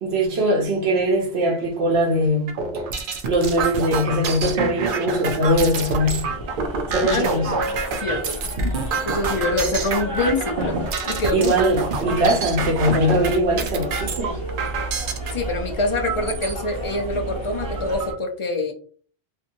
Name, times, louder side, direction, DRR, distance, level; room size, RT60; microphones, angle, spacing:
voice 1, 0.0-2.6 3.2-6.3 6.9-7.5 11.3-14.4, equal, 85° right, 1.0 m, -21 dB
sound 1, 2.5-15.3 16.0-16.5 17.1-17.2 17.5-18.1, right 4 dB, 65° right, 0.7 m, -27 dB
sound 2, 5.4-18.1, right 1 dB, 30° right, 1.1 m, -32 dB
voice 2, 8.0-8.4 8.6-10.8 11.1-11.5 15.3-18.7, left 2 dB, 40° left, 0.5 m, -25 dB
2.7 x 2.6 x 2.5 m
omnidirectional pair, 1.0 m